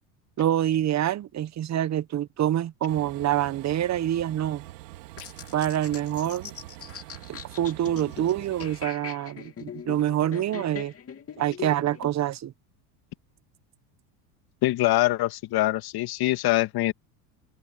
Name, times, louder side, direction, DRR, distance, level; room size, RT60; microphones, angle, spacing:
voice 1, 0.4-4.6 5.5-6.5 7.3-10.9 11.4-12.5, right 11 dB, 35° right, 1.0 m, -26 dB
Train, 2.9-8.9, right 18 dB, 80° right, 2.1 m, -44 dB
sound 1, 5.2-12.1, left 8 dB, 30° left, 2.7 m, -41 dB
voice 2, 14.6-16.9, left 16 dB, 50° left, 2.1 m, -24 dB
supercardioid pair, 100°, 48 cm